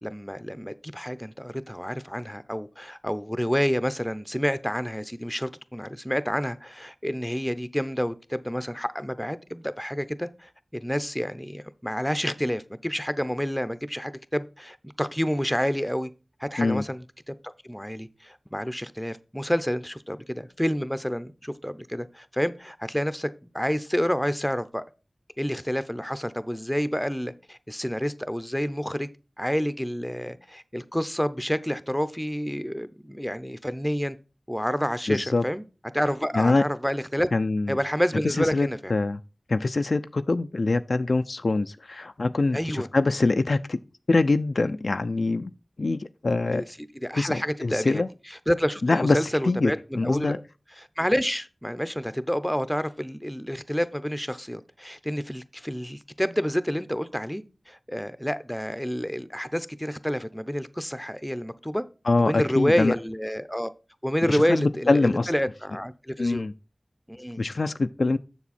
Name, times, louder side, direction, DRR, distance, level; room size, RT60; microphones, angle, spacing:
voice 1, 0.0-16.1 16.4-23.3 23.5-24.8 25.4-29.1 29.4-34.2 34.5-35.6 35.9-37.3 37.7-38.9 42.5-42.9 46.4-46.7 47.0-48.0 48.5-50.4 50.8-61.8 62.2-63.7 64.0-66.4 67.1-67.4, equal, 5° left, 0.6 m, -29 dB
voice 2, 35.1-35.4 36.3-36.7 37.3-37.8 38.2-39.2 39.5-43.8 44.1-45.5 45.8-46.6 47.2-48.1 48.8-50.4 62.1-63.0 64.3-65.3 66.2-66.5 67.4-68.2, left 3 dB, 80° left, 0.4 m, -24 dB
7.2 x 6.9 x 4.2 m
wide cardioid pair, 55°, 0 cm